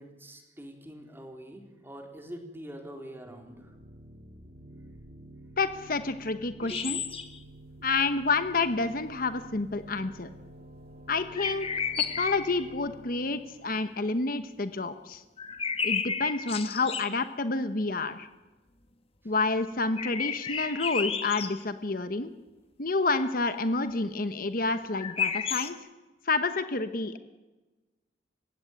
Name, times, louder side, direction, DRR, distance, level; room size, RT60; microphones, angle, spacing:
voice 1, 0.0-3.8 6.7-6.9 19.2-19.3, equal, 15° right, 3 dB, 3.8 m, -45 dB
sound 1, 3.2-14.8, right 1 dB, 45° right, 3.0 m, -50 dB
voice 2, 5.6-7.0 7.8-10.3 11.1-15.2 15.8-18.3 19.2-22.3 22.8-25.8 26.3-27.2, left 3 dB, 50° left, 10 dB, 1.1 m, -29 dB
sound 2, 6.6-7.4 11.3-12.6 15.4-17.2 20.0-21.6 24.9-25.7, left 6 dB, 35° left, 1.7 m, -32 dB
28.5 x 16.5 x 9.3 m, 1.2 s
head